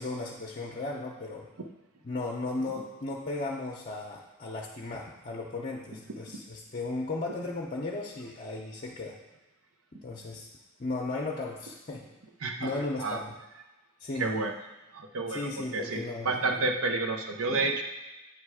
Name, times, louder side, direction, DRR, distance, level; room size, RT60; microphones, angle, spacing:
voice 1, 0.0-1.5 2.0-9.2 10.0-10.5 10.8-12.1 12.6-13.4 14.0-14.4 15.3-16.6, left 2 dB, 35° left, -3 dB, 0.6 m, -35 dB
voice 2, 12.4-13.2 14.2-14.5 14.9-17.8, right 3 dB, 80° right, 3 dB, 0.7 m, -30 dB
9.3 x 3.3 x 4.8 m, 1.0 s
head